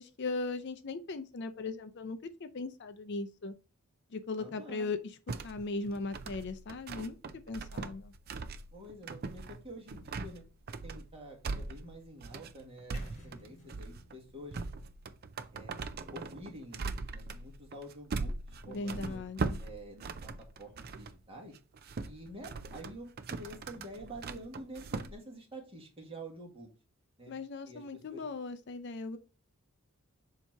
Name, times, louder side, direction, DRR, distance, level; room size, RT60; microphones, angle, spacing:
voice 1, 0.0-3.5 4.1-5.0 5.4-7.2 7.5-8.1 18.7-19.6 27.3-29.2, left 3 dB, 50° left, 0.5 m, -38 dB
voice 2, 4.4-4.9 8.7-10.4 10.8-14.6 15.5-15.8 16.1-19.2 19.6-20.3 20.6-21.5 22.0-26.7 27.2-27.3 27.7-28.2, right 1 dB, 25° right, 1.6 m, -48 dB
sound 1, 5.3-21.2 21.6-25.1, right 3 dB, 45° right, 0.4 m, -40 dB
sound 2, 12.9-16.9, left 1 dB, 35° left, 1.4 m, -57 dB
7.2 x 2.9 x 4.5 m
head